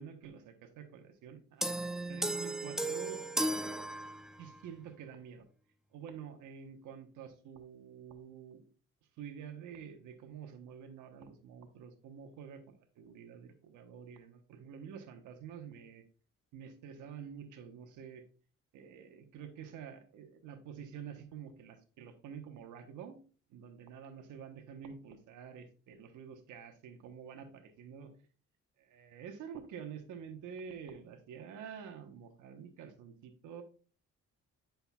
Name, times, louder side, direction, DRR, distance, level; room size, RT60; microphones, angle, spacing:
voice 1, 0.0-3.2 4.4-5.4 5.9-8.6 9.2-16.0 16.5-18.2 18.7-23.2 23.5-28.1 28.8-33.6, right 7 dB, 85° right, 6 dB, 1.1 m, -48 dB
sound 1, 1.6-4.6, right 1 dB, ahead, 0.4 m, -35 dB
7.9 x 5.8 x 2.3 m, 0.39 s
cardioid pair, 90°, 30 cm